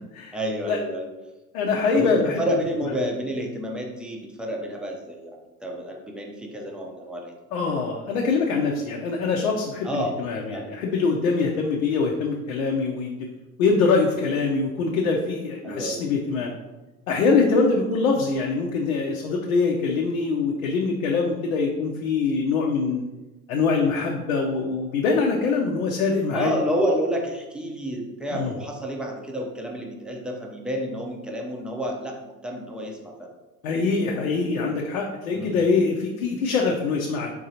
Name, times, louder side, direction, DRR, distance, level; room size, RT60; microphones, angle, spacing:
voice 1, 0.3-1.1 1.9-7.3 9.8-10.1 10.5-10.7 15.6-16.0 26.3-33.3 35.3-35.6, equal, ahead, 0 dB, 0.7 m, -29 dB
voice 2, 1.5-2.4 7.5-13.1 13.6-16.5 17.1-23.0 23.5-26.5 28.3-28.5 33.6-37.3, left 4 dB, 65° left, -1 dB, 0.7 m, -23 dB
4.7 x 3.7 x 2.8 m, 1.1 s
figure-of-eight pair, 75°, 44 cm